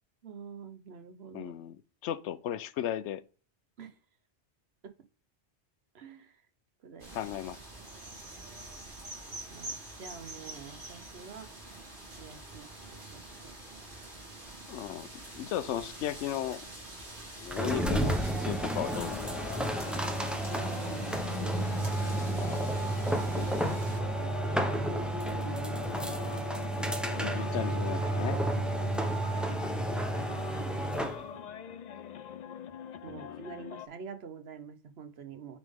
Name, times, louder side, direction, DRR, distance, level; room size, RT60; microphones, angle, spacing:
voice 1, 0.2-1.5 3.8-4.0 4.8-4.9 5.9-6.4 6.8-7.3 9.5-11.5 12.2-13.6 15.8-15.9 20.5-22.6 24.0-25.7 26.1-26.5 27.1-28.0 28.3-28.5 28.8-29.0 30.2-31.5 33.0-35.6, right 6 dB, 70° right, 1.1 m, -47 dB
voice 2, 1.3-3.2 7.1-7.6 14.7-15.1 15.4-16.7 17.4-19.2 23.3-23.7 27.2-28.4 28.7-29.0 33.1-33.5, left 11 dB, 85° left, 0.9 m, -36 dB
sound 1, 7.0-24.0, right 1 dB, 50° right, 2.7 m, -46 dB
sound 2, 17.5-31.2, right 1 dB, ahead, 0.6 m, -31 dB
sound 3, 18.9-33.9, left 8 dB, 55° left, 0.5 m, -43 dB
9.1 x 3.6 x 3.5 m
omnidirectional pair, 1.1 m